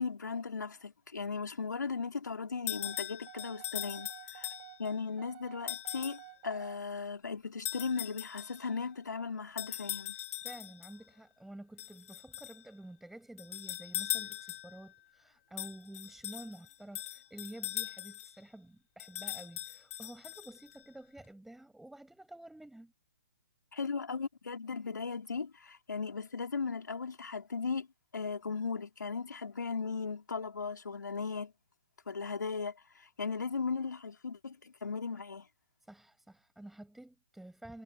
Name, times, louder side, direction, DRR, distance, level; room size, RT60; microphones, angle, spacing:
voice 1, 0.0-4.1 4.3-4.5 4.8-10.2 23.7-27.9 28.1-31.5 32.1-35.5, left 5 dB, 85° left, 4.8 m, -37 dB
sound 1, 2.7-4.9 5.7-6.3 7.6-8.7 9.6-11.0 11.8-12.6 13.4-14.8 15.6-18.3 19.0-20.8, left 14 dB, 50° left, 5.4 m, -40 dB
sound 2, 2.8-6.8, right 23 dB, 35° right, 4.5 m, -51 dB
voice 2, 10.4-22.9 35.8-37.8, right 1 dB, ahead, 7.2 m, -50 dB
hypercardioid pair, 135°, 10 cm